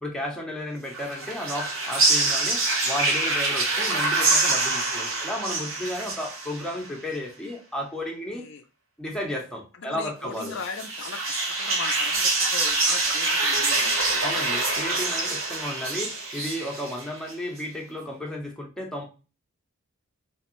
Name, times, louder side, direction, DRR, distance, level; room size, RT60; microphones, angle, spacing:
voice 1, 0.0-8.4 9.0-10.6 14.2-19.0, left 1 dB, 5° left, -1 dB, 0.7 m, -33 dB
sound 1, 0.9-6.9 10.4-17.3, right 2 dB, 60° right, 0.9 m, -25 dB
voice 2, 9.8-14.1, left 5 dB, 55° left, 7 dB, 0.3 m, -39 dB
3.3 x 3.1 x 2.9 m, 0.33 s
head